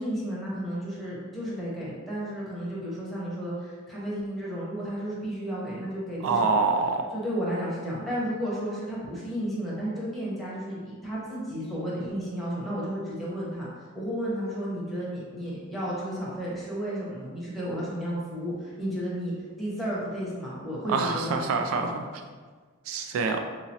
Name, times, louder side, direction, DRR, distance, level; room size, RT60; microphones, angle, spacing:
voice 1, 0.0-6.6 7.1-19.3 19.6-21.4 21.8-21.9, equal, ahead, -8 dB, 1.0 m, -33 dB
voice 2, 6.2-7.1 20.9-22.1 22.9-23.4, right 4 dB, 75° right, 5 dB, 0.3 m, -26 dB
3.7 x 2.9 x 2.8 m, 1.5 s
head